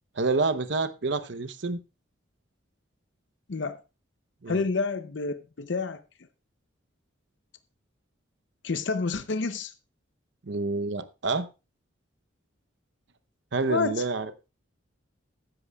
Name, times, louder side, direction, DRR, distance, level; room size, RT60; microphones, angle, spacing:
voice 1, 0.2-1.8 4.4-4.6 10.5-11.5 13.5-14.3, right 3 dB, 60° right, 0.8 m, -28 dB
voice 2, 4.5-6.0 8.6-9.7 13.7-14.0, left 4 dB, 65° left, 0.6 m, -29 dB
14.5 x 11.0 x 2.3 m
head